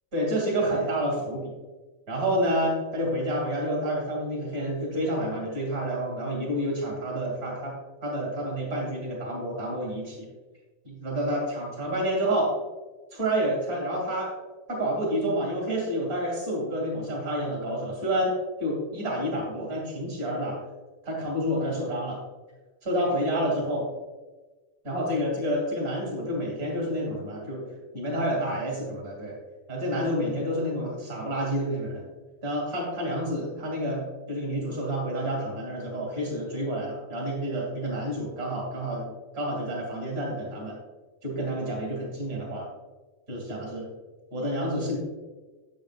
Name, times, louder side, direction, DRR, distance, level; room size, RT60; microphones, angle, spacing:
voice 1, 0.1-1.5 2.1-7.8 8.0-10.3 10.8-12.5 13.1-14.3 14.7-18.3 18.6-20.6 21.0-22.2 22.8-23.9 24.8-29.3 29.7-32.0 32.4-40.7 41.2-42.6 43.3-43.9 44.3-45.0, equal, 30° right, -3 dB, 2.4 m, -29 dB
8.6 x 7.6 x 2.4 m, 1.2 s
omnidirectional pair, 3.8 m